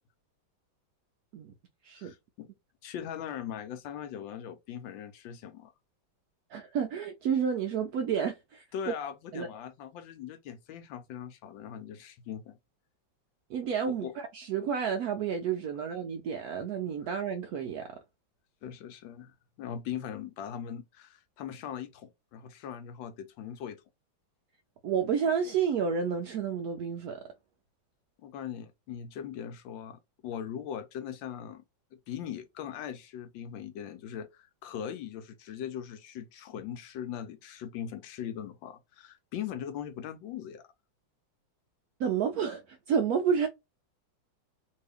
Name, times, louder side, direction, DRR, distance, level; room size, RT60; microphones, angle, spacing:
voice 1, 1.9-2.5 2.8-5.7 8.7-12.6 13.9-14.1 18.6-23.8 28.2-31.6 32.1-40.6, left 9 dB, 75° left, 1.3 m, -40 dB
voice 2, 6.5-8.9 9.3-9.5 13.5-18.0 24.8-27.2 42.0-43.5, right 7 dB, 90° right, 0.8 m, -30 dB
2.9 x 2.7 x 3.3 m
omnidirectional pair, 2.1 m